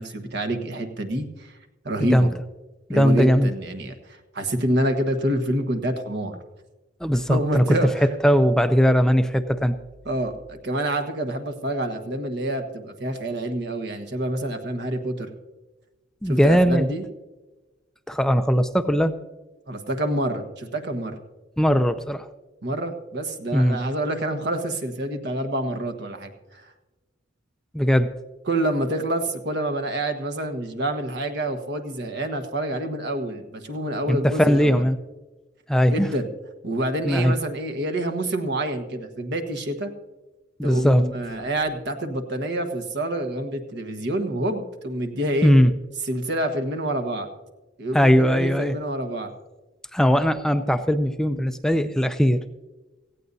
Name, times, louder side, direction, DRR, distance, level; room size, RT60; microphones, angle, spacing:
voice 1, 0.0-1.5 1.8-2.3 2.9-3.9 4.3-6.4 7.3-8.1 10.0-15.3 16.3-17.0 19.7-21.2 22.6-26.6 28.5-34.8 35.9-36.3 36.6-39.9 40.6-45.5 46.1-47.3 47.8-49.3, right 1 dB, 60° right, 6 dB, 1.3 m, -27 dB
voice 2, 2.0-2.3 2.9-3.5 7.0-9.8 16.2-16.9 18.1-19.1 21.6-22.3 23.5-23.8 27.7-28.1 34.1-35.0 35.7-36.1 37.0-37.3 40.6-41.0 45.4-45.7 47.9-48.7 49.9-52.4, equal, 5° left, 8 dB, 0.4 m, -19 dB
18.0 x 15.0 x 2.7 m, 1.1 s
head